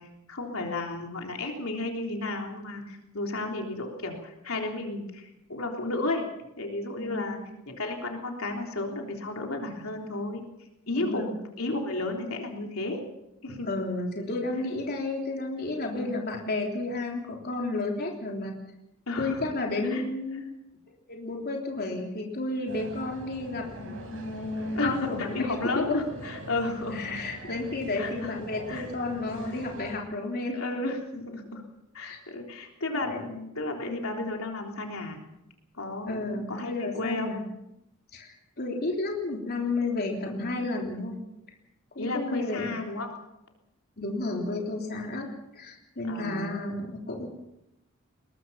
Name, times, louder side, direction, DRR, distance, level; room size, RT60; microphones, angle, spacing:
voice 1, 0.0-6.3 6.6-7.4 7.7-10.4 10.9-11.3 11.6-13.0 13.4-13.7 15.9-16.1 19.1-19.4 19.9-20.0 24.8-27.2 28.0-28.3 28.7-28.9 30.5-31.6 31.9-35.2 35.8-37.3 42.0-43.1 46.1-46.6, left 2 dB, 75° left, 2 dB, 3.5 m, -33 dB
voice 2, 7.0-7.4 11.0-11.3 13.6-18.6 19.2-20.4 21.1-26.0 26.9-30.6 32.0-32.2 32.9-33.2 36.1-37.4 38.1-41.2 42.0-42.7 44.0-47.3, left 2 dB, 50° left, 0 dB, 3.5 m, -32 dB
sound 1, 22.7-30.0, right 1 dB, 65° right, 6.1 m, -43 dB
21.5 x 21.0 x 5.7 m, 0.88 s
head